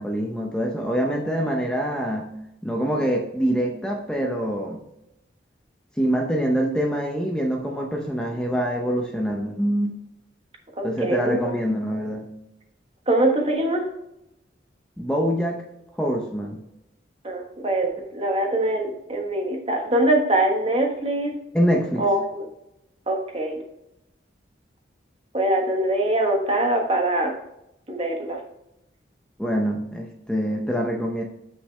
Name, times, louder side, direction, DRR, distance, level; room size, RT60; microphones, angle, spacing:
voice 1, 0.0-2.3 2.6-4.8 6.0-9.9 10.8-12.3 15.0-15.6 16.0-16.6 21.5-22.1 29.4-31.2, equal, 5° left, 0 dB, 0.7 m, -25 dB
voice 2, 10.8-11.4 13.1-13.8 17.2-21.3 22.0-22.5 23.1-23.6 25.3-27.3 27.9-28.4, right 1 dB, 30° right, 2 dB, 1.3 m, -23 dB
7.7 x 5.9 x 3.3 m, 0.85 s
head